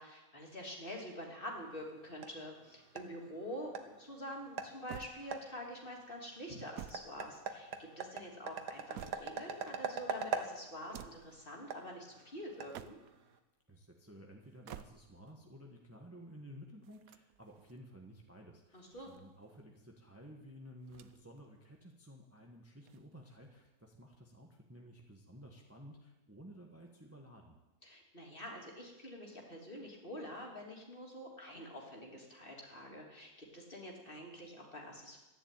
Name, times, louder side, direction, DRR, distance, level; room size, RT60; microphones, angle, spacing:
voice 1, 0.0-13.0 18.7-19.1 27.8-35.2, equal, 35° left, -1 dB, 3.2 m, -47 dB
sound 1, 1.6-13.4, right 5 dB, 85° right, 1.7 m, -44 dB
sound 2, 4.9-5.7 6.5-7.9 8.5-9.6 10.7-11.4 12.5-13.3 14.4-15.3 16.8-17.8 18.7-19.6 20.8-21.4 21.7-21.8 22.8-23.6, right 10 dB, 70° right, 1.1 m, -52 dB
voice 2, 13.7-27.6, equal, 10° right, 1 dB, 1.4 m, -54 dB
14.0 x 11.0 x 9.0 m, 1.0 s
omnidirectional pair, 1.7 m